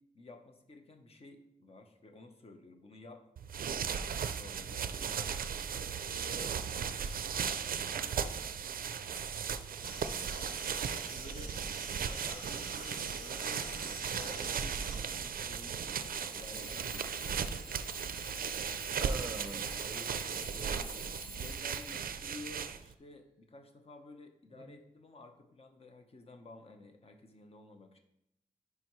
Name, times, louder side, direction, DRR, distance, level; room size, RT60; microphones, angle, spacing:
voice 1, 0.1-3.2 3.7-5.6 6.1-6.7 7.0-7.1 7.8-8.5 10.0-10.5 11.0-11.5 12.0-17.8 20.6-20.9 21.2-28.0, left 3 dB, 45° left, 5 dB, 0.8 m, -53 dB
sound 1, 3.4-22.9, right 7 dB, 85° right, 0.4 m, -37 dB
voice 2, 6.3-6.8 19.0-21.0 24.6-24.8, right 3 dB, 30° right, 7 dB, 0.5 m, -45 dB
sound 2, 9.8-15.0, left 1 dB, 85° left, 2.2 m, -49 dB
Alarm / Clock, 10.9-11.0 11.5-12.0 12.5-12.9 13.8-13.9 15.9-22.3, equal, ahead, 0.9 m, -49 dB
9.8 x 4.7 x 3.1 m, 0.80 s
wide cardioid pair, 145°, 14 cm